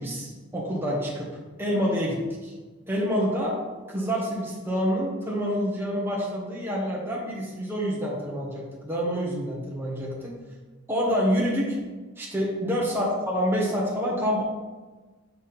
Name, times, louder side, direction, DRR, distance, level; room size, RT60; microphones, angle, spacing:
voice 1, 0.0-2.5 2.9-3.5 3.9-10.3 10.9-11.8 12.2-14.4, equal, 10° right, -5 dB, 1.5 m, -27 dB
6.9 x 5.0 x 4.3 m, 1.3 s
head